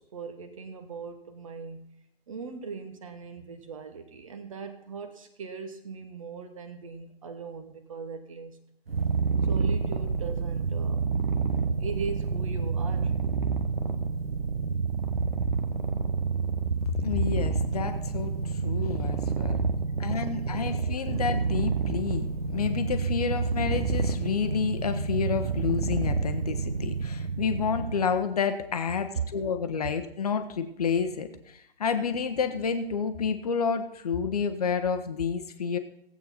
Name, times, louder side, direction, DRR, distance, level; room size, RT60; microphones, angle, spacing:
voice 1, 0.0-1.8 2.3-8.6 9.4-11.1 11.8-13.1 18.7-19.0 19.4-21.3 28.9-29.5, right 5 dB, 30° right, 9 dB, 1.0 m, -39 dB
Purr, 8.9-28.2, right 5 dB, 65° right, 1.1 m, -29 dB
voice 2, 16.8-19.6 20.0-35.8, left 6 dB, 35° left, 8 dB, 1.0 m, -29 dB
16.5 x 8.3 x 4.2 m, 0.76 s
figure-of-eight pair, 140°, 32 cm